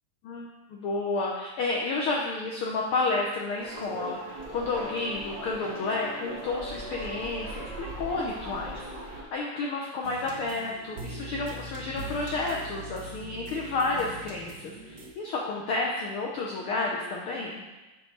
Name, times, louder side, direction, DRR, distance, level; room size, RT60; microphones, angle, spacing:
voice 1, 0.2-17.6, left 3 dB, 85° left, -2 dB, 1.2 m, -31 dB
sound 1, 3.6-9.2, right 1 dB, 30° right, 0.9 m, -39 dB
sound 2, 10.0-15.1, right 2 dB, 70° right, 1.0 m, -41 dB
6.4 x 5.6 x 4.5 m, 1.1 s
omnidirectional pair, 3.3 m